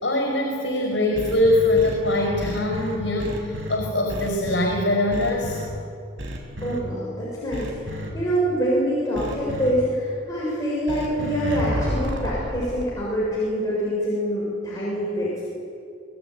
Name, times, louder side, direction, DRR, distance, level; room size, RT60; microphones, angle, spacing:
voice 1, 0.0-5.6, left 1 dB, 65° left, 1 dB, 5.1 m, -22 dB
sound 1, 1.1-3.8 4.1-4.7 5.1-5.7 6.2-6.8 7.5-8.1 9.1-9.7 10.9-12.8, equal, 80° right, 5.2 m, -31 dB
voice 2, 6.6-15.4, equal, 15° left, -8 dB, 6.8 m, -25 dB
27.0 x 19.0 x 9.4 m, 2.5 s
head